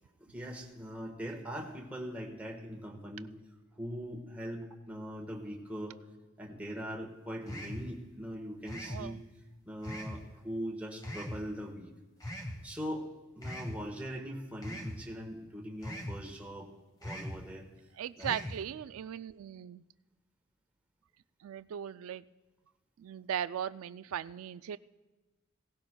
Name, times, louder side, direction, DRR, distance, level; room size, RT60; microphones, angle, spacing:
voice 1, 0.2-3.3 3.7-6.0 6.4-9.2 9.6-11.9 12.6-13.1 13.3-16.7 17.0-17.7 18.2-18.4, equal, 5° right, 0 dB, 1.3 m, -41 dB
sound 1, 7.5-7.9 8.7-9.0 9.8-10.2 11.0-11.4 12.2-12.6 13.4-13.8 14.6-15.0 15.8-16.2 17.0-17.4 18.2-18.6, equal, 20° left, 1.2 m, -40 dB
voice 2, 8.9-9.2 18.0-19.8 21.4-22.3 23.0-24.8, right 9 dB, 70° right, 16 dB, 0.3 m, -38 dB
18.0 x 15.5 x 2.3 m, 1.2 s
head